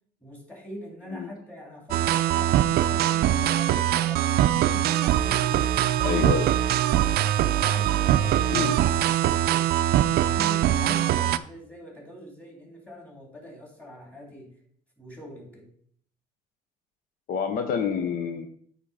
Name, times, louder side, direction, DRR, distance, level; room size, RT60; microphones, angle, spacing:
voice 1, 0.2-5.8 6.1-6.2 6.6-7.2 7.5-14.5 15.0-15.7, equal, 10° left, -1 dB, 2.8 m, -44 dB
sound 1, 1.9-11.4, right 12 dB, 65° right, 0.4 m, -22 dB
voice 2, 6.0-6.5 8.5-8.7 17.3-18.5, left 7 dB, 60° left, 6 dB, 0.7 m, -27 dB
8.5 x 3.6 x 5.5 m, 0.62 s
cardioid pair, 110°, 17 cm